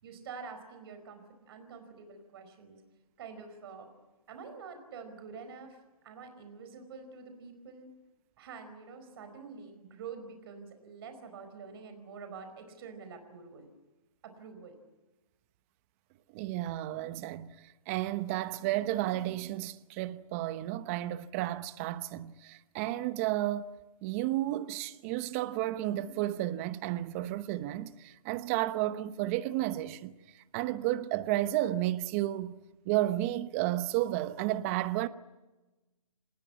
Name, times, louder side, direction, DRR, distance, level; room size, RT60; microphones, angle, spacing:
voice 1, 0.0-2.8 3.2-3.9 4.3-5.8 6.0-7.9 8.4-13.7 14.2-14.7, right 5 dB, 40° right, 4.8 m, -47 dB
voice 2, 16.3-17.5 17.9-23.7 24.0-30.2 30.5-32.6 32.8-35.1, right 15 dB, 25° right, 0.9 m, -32 dB
26.0 x 20.0 x 9.7 m
hypercardioid pair, 150°, 19 cm